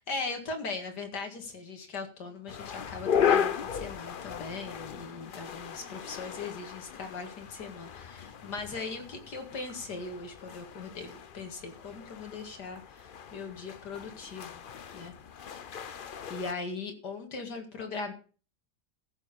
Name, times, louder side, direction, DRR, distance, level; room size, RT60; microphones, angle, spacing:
voice 1, 0.0-14.6 14.9-15.1 16.3-18.1, left 4 dB, 75° left, 5 dB, 2.5 m, -39 dB
sound 1, 2.5-16.5, left 8 dB, 55° left, 0.5 m, -35 dB
14.5 x 7.1 x 5.3 m, 0.38 s
omnidirectional pair, 1.8 m